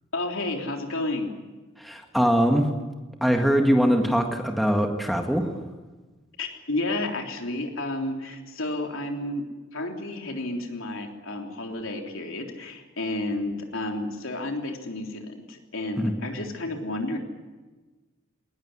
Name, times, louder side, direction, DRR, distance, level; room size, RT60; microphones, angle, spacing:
voice 1, 0.1-1.3 6.4-9.5 9.7-17.2, left 2 dB, 75° left, 2 dB, 3.5 m, -31 dB
voice 2, 1.8-2.7 3.2-5.5 16.0-16.1, equal, ahead, 3 dB, 1.8 m, -22 dB
21.0 x 19.5 x 9.8 m, 1.2 s
head